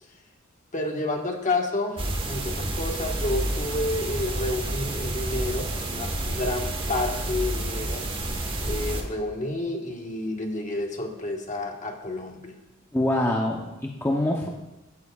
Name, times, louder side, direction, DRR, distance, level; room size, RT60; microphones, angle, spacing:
voice 1, 0.7-8.1 8.4-12.6, left 2 dB, 40° left, 2 dB, 1.4 m, -30 dB
sound 1, 2.0-9.0, right 1 dB, 25° right, 1.3 m, -29 dB
voice 2, 12.9-14.5, left 1 dB, 10° left, -1 dB, 0.7 m, -25 dB
15.0 x 12.0 x 2.4 m, 1.1 s
head